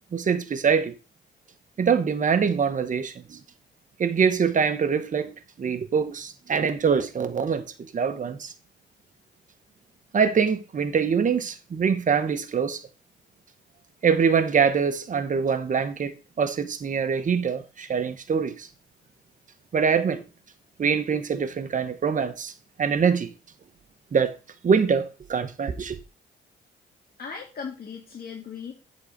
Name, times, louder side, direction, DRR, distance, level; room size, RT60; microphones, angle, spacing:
voice 1, 0.1-0.9 1.8-3.4 4.0-5.3 5.6-7.7 7.9-8.5 10.1-12.8 14.0-18.7 19.7-20.2 20.8-22.5 22.8-23.3 24.1-24.4 24.6-26.0, right 6 dB, 40° right, 1.2 m, -24 dB
voice 2, 27.2-28.7, left 6 dB, 50° left, 2.0 m, -37 dB
8.6 x 4.2 x 6.6 m
cardioid pair, 90°, 20 cm